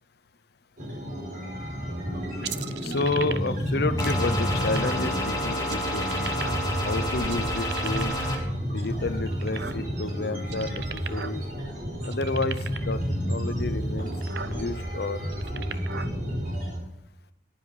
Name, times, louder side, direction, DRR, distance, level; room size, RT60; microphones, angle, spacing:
sound 1, 0.8-16.8, equal, 50° right, 5.5 m, -31 dB
sound 2, 2.4-3.6 4.0-5.1 5.6-6.9 7.2-8.3 8.8-10.1 10.4-11.4 11.6-11.7 12.0-12.9 13.6-13.7 14.1-14.5 15.2-16.1, right 7 dB, 65° right, 0.6 m, -37 dB
voice 1, 2.8-6.1 6.8-8.1 8.7-11.4 12.0-14.1 14.4-15.8, left 3 dB, 60° left, 13 dB, 0.7 m, -30 dB
sound 3, 4.0-8.4, left 1 dB, 20° left, 2.3 m, -30 dB
10.5 x 9.9 x 5.4 m, 0.83 s
head